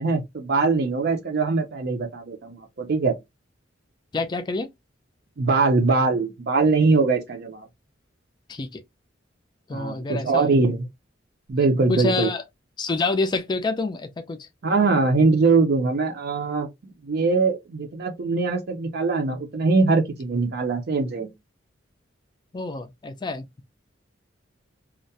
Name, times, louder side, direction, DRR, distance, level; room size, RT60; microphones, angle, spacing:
voice 1, 0.0-3.2 5.4-7.7 9.7-10.9 11.5-12.3 14.6-16.7 17.0-21.3, right 3 dB, 55° right, 0.5 m, -22 dB
voice 2, 4.1-4.7 8.5-8.8 9.7-10.4 11.9-12.4 12.8-14.5 22.5-23.5, left 3 dB, 25° left, 0.3 m, -27 dB
2.3 x 2.1 x 2.6 m
head